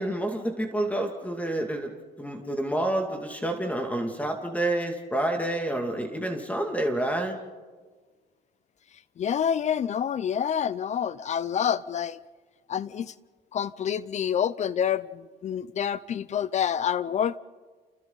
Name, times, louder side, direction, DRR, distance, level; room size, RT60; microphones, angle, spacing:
voice 1, 0.0-1.9 2.2-7.4, right 1 dB, 10° left, 2.4 m, -28 dB
voice 2, 9.2-12.2 12.7-13.1 13.5-17.4, left 8 dB, 45° left, 0.6 m, -27 dB
29.5 x 28.0 x 4.0 m
cardioid pair, 110°, 17 cm